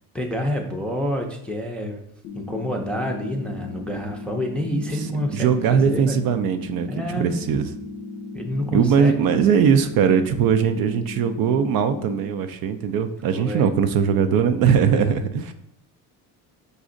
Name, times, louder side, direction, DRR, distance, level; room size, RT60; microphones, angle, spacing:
voice 1, 0.1-2.0 2.3-6.2 6.9-7.4 8.3-9.2 13.3-13.7 15.0-15.3, equal, 5° left, 1 dB, 0.5 m, -28 dB
sound 1, 2.2-12.3, left 3 dB, 55° left, 0.5 m, -36 dB
voice 2, 5.3-6.9 7.2-7.7 8.7-15.5, right 7 dB, 70° right, 8 dB, 0.5 m, -20 dB
5.2 x 2.4 x 3.8 m, 0.71 s
cardioid pair, 90°, 36 cm